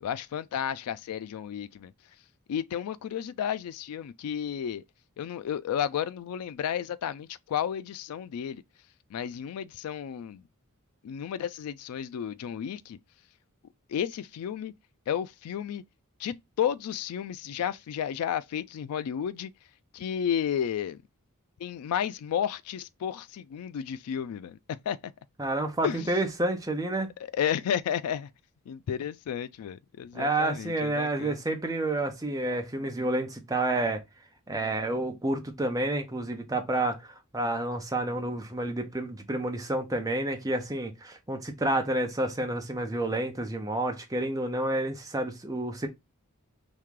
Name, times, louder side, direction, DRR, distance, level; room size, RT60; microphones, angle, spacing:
voice 1, 0.0-1.9 2.5-4.8 5.2-8.6 9.1-10.4 11.0-13.0 13.9-14.7 15.1-15.8 16.2-19.5 19.9-21.0 21.6-25.0 25.8-26.1 27.2-28.3 28.7-31.4, left 9 dB, 75° left, 0.3 m, -32 dB
voice 2, 25.4-27.1 30.1-34.0 34.5-45.9, right 2 dB, 15° right, 0.8 m, -29 dB
3.1 x 2.8 x 3.6 m
head